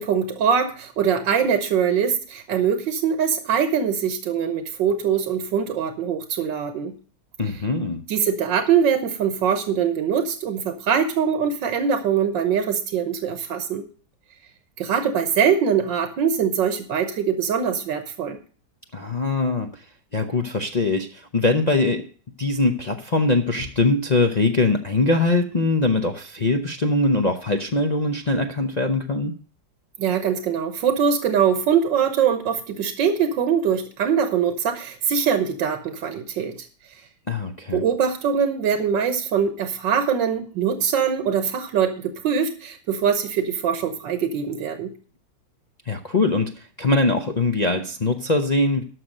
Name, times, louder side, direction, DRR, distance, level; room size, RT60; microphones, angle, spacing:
voice 1, 0.0-6.9 8.1-13.8 14.8-18.4 30.0-36.5 37.7-44.9, right 7 dB, 85° right, 8 dB, 1.7 m, -22 dB
voice 2, 7.4-8.0 18.9-19.8 20.1-22.0 22.4-29.3 37.3-37.8 45.8-48.8, left 3 dB, 45° left, 4 dB, 0.5 m, -22 dB
12.5 x 6.1 x 6.4 m, 0.42 s
omnidirectional pair, 1.9 m